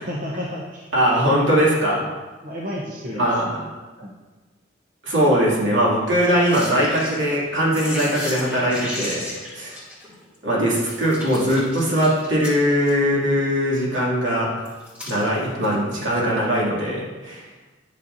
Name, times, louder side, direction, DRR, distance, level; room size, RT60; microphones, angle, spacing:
voice 1, 0.0-0.9 1.3-1.7 2.4-3.6 4.0-4.2, equal, 45° right, -3 dB, 0.8 m, -32 dB
voice 2, 0.9-2.0 3.1-3.4 5.0-9.3 9.5-9.8 10.4-14.5 15.0-17.4, equal, 80° right, -6 dB, 2.5 m, -20 dB
sound 1, 6.4-7.4 7.7-10.4 10.9-12.9 14.6-15.7 16.6-16.7, left 1 dB, 10° right, 2.5 m, -34 dB
11.0 x 6.6 x 2.7 m, 1.3 s
head